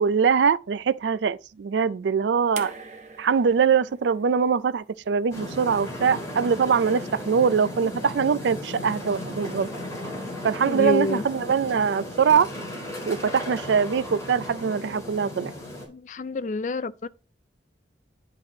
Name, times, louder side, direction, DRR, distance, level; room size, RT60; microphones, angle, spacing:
voice 1, 0.0-2.7 3.2-9.7 10.4-12.5 13.1-15.5, right 6 dB, 75° right, 0.4 m, -23 dB
sound 1, 2.6-5.7 6.9-7.0, right 5 dB, 40° right, 0.9 m, -43 dB
sound 2, 5.3-15.8, left 1 dB, 15° left, 3.4 m, -36 dB
voice 2, 10.7-11.2 15.9-17.1, left 3 dB, 40° left, 0.3 m, -27 dB
10.5 x 4.7 x 3.7 m
head